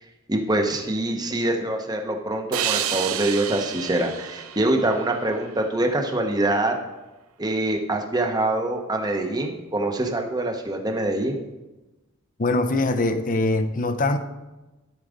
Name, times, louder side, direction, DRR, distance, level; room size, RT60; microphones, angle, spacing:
voice 1, 0.3-6.8 7.4-11.4, right 1 dB, 20° right, 1.0 m, -24 dB
sound 1, 2.5-5.8, right 10 dB, 85° right, 0.7 m, -30 dB
voice 2, 12.4-14.2, left 2 dB, 40° left, 0.7 m, -22 dB
12.5 x 4.8 x 5.1 m
head